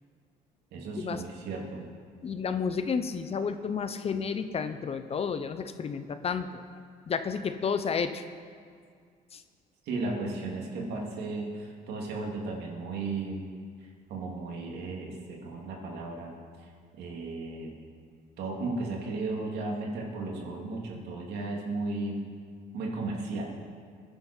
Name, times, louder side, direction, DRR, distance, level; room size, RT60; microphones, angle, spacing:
voice 1, 0.7-1.9 9.8-13.5 13.8-16.3 16.6-16.7 17.0-17.7 18.4-22.2 22.7-23.4, right 3 dB, 75° right, -1 dB, 2.9 m, -35 dB
voice 2, 2.2-6.6 7.1-8.2 9.3-9.4, left 6 dB, 35° left, 10 dB, 0.8 m, -31 dB
20.5 x 10.5 x 4.5 m, 2.1 s
cardioid pair, 110°, 17 cm